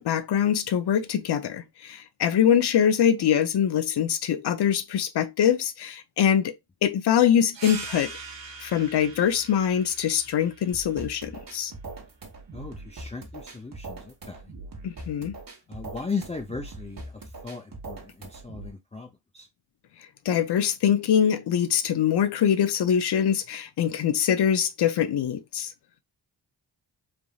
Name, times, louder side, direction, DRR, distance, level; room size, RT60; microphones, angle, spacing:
voice 1, 0.0-6.5 6.8-8.1 8.6-11.7 14.8-15.4 20.3-25.7, left 9 dB, 65° left, 0.6 m, -23 dB
sound 1, 7.5-12.7, right 4 dB, 70° right, 0.8 m, -43 dB
sound 2, 10.7-18.7, right 2 dB, 50° right, 1.2 m, -41 dB
voice 2, 12.5-14.5 15.7-19.1 19.3-19.5, left 4 dB, 15° left, 0.5 m, -37 dB
3.4 x 2.5 x 2.3 m
cardioid pair, 55°, 44 cm